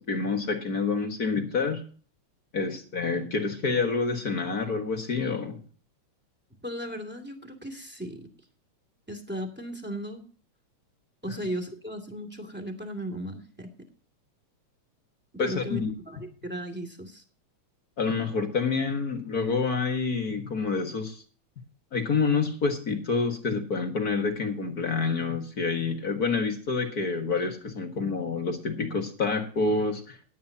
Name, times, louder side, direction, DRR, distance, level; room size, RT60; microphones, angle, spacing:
voice 1, 0.1-1.8 2.5-5.6 15.4-15.9 18.0-21.2 21.9-30.2, left 4 dB, 40° left, 5 dB, 1.6 m, -28 dB
voice 2, 6.6-8.3 9.1-10.2 11.2-13.7 15.3-17.2, equal, 5° right, 6 dB, 1.9 m, -36 dB
17.5 x 11.0 x 2.8 m, 0.41 s
omnidirectional pair, 3.3 m